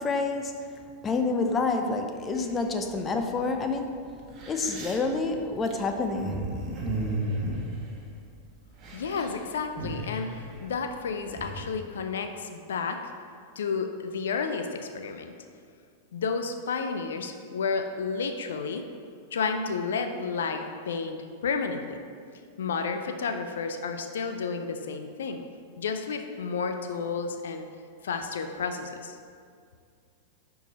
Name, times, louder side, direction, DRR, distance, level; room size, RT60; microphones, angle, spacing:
voice 1, 0.0-4.1 4.5-6.6, left 3 dB, 25° left, 5 dB, 0.6 m, -28 dB
sound 1, 2.3-3.0 3.7-3.8 4.2-8.4 8.7-9.3 9.6-11.7, right 1 dB, 40° right, 1.1 m, -35 dB
voice 2, 8.9-13.0 13.6-15.3 16.1-18.9 19.3-22.0 22.6-25.4 25.8-27.6 28.0-29.2, left 5 dB, 85° left, 6 dB, 0.4 m, -31 dB
5.1 x 4.6 x 4.2 m, 2.2 s
hypercardioid pair, 115°, 0 cm